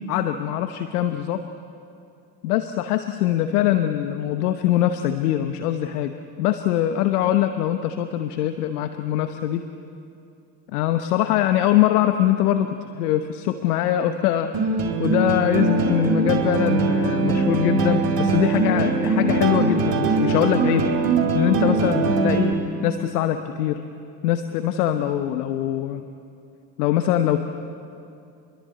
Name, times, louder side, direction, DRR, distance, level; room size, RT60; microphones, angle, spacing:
voice 1, 0.1-1.4 2.4-9.7 10.7-22.6 22.8-23.8 24.2-26.0 26.8-27.4, left 12 dB, 80° left, 9 dB, 1.0 m, -23 dB
sound 1, 14.5-22.5, right 3 dB, 50° right, 3.8 m, -21 dB
25.5 x 22.0 x 8.6 m, 2.6 s
hypercardioid pair, 50°, 45 cm